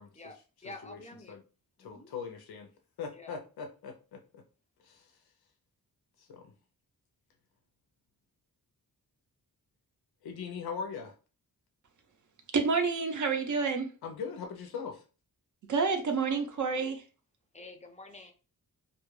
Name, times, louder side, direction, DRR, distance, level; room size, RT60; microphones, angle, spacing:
voice 1, 0.1-1.4 1.8-2.1 3.1-3.4 17.5-18.3, left 2 dB, 20° left, 0.4 m, -48 dB
voice 2, 1.8-2.7 3.0-4.4 4.8-5.1 6.3-6.5 10.2-11.1 14.0-15.0, left 6 dB, 85° left, 0.5 m, -40 dB
voice 3, 12.5-13.9 15.7-17.0, right 5 dB, 55° right, 0.5 m, -28 dB
2.3 x 2.1 x 3.0 m
cardioid pair, 80°, 37 cm